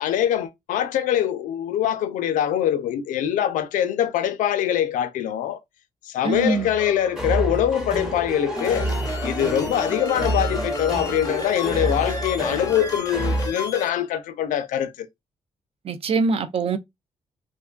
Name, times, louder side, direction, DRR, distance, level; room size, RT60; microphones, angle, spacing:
voice 1, 0.0-5.6 6.1-8.9 9.2-15.1, left 10 dB, 85° left, 0.4 m, -23 dB
voice 2, 6.2-6.7 15.8-16.8, right 4 dB, 50° right, 0.4 m, -23 dB
sound 1, 6.3-13.5, right 1 dB, 5° right, 0.7 m, -28 dB
sound 2, 8.6-13.9, left 3 dB, 30° left, 0.6 m, -33 dB
2.5 x 2.2 x 2.3 m
cardioid pair, 90°, 13 cm